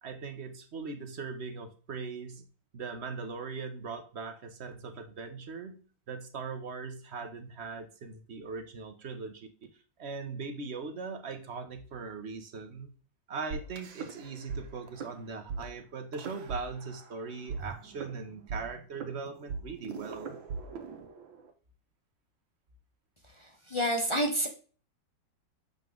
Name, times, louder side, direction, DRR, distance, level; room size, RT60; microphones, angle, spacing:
voice 1, 0.0-2.4 2.7-5.8 6.1-9.5 10.0-12.9 13.3-20.4, right 4 dB, 45° right, 6 dB, 1.0 m, -40 dB
sound 1, 13.5-14.6 14.9-15.1 15.5-15.6 16.1-17.1 17.5-21.5, right 5 dB, 80° right, 1.8 m, -39 dB
voice 2, 23.4-24.5, equal, 30° left, 2 dB, 0.5 m, -29 dB
7.1 x 5.7 x 3.7 m, 0.39 s
omnidirectional pair, 2.1 m